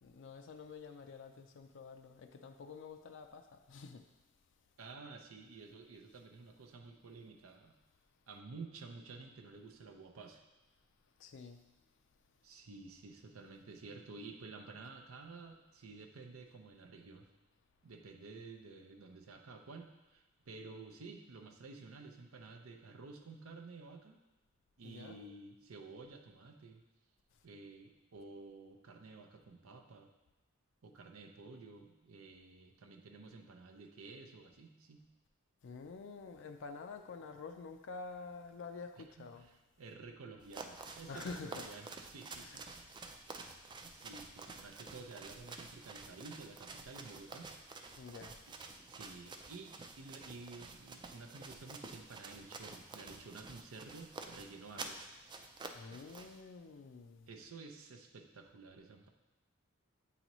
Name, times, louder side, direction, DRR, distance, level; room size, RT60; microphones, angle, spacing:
voice 1, 0.0-4.0 11.2-11.6 24.8-25.3 35.6-39.5 41.1-41.7 42.4-42.7 48.0-48.4 55.7-57.3, left 4 dB, 60° left, 6 dB, 0.4 m, -48 dB
voice 2, 4.8-7.7 8.3-10.4 12.4-17.3 17.8-24.2 24.8-26.8 27.4-30.1 30.8-35.0 39.2-39.5 39.8-42.7 43.8-47.5 48.9-55.1 57.3-59.1, right 3 dB, 85° right, 3 dB, 0.6 m, -52 dB
sound 1, 40.4-56.4, right 3 dB, 20° right, 0.3 m, -50 dB
8.3 x 3.9 x 3.0 m, 1.0 s
head